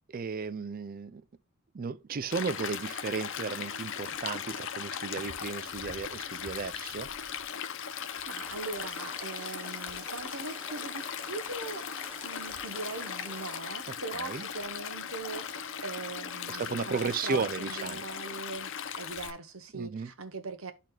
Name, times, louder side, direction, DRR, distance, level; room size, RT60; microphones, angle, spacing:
voice 1, 0.1-1.2 1.7-7.1 13.9-14.4 16.5-18.0 19.7-20.1, right 5 dB, 40° right, 0.4 m, -34 dB
Stream, 2.3-19.3, left 8 dB, 55° left, 0.7 m, -38 dB
voice 2, 7.9-11.9 12.2-18.7 19.0-20.7, right 3 dB, 65° right, 1.1 m, -41 dB
sound 1, 8.4-13.6, right 1 dB, 10° right, 0.9 m, -49 dB
12.0 x 4.2 x 2.4 m
head